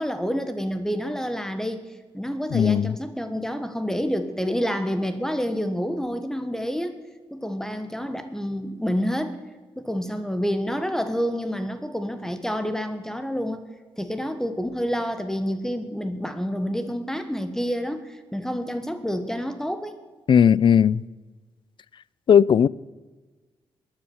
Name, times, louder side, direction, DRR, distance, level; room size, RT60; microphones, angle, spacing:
voice 1, 0.0-1.8 2.1-7.0 7.3-9.4 9.8-13.6 14.0-19.9, equal, 5° left, 1.2 m, -28 dB
voice 2, 2.5-2.9 20.3-21.0 22.3-22.7, left 8 dB, 50° left, 0.4 m, -17 dB
13.5 x 9.9 x 7.1 m
cardioid pair, 85°, 10 cm